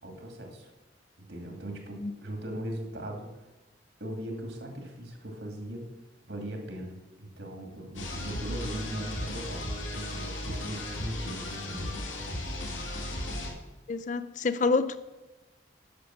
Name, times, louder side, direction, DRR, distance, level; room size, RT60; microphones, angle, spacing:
voice 1, 0.0-0.7 1.2-3.3 4.0-5.9 6.3-9.6 10.1-11.9, right 1 dB, 65° right, 2.3 m, -39 dB
sound 1, 7.9-13.5, left 1 dB, 90° left, 2.5 m, -35 dB
voice 2, 13.9-15.0, left 4 dB, 40° left, 0.4 m, -27 dB
10.5 x 6.6 x 6.4 m
head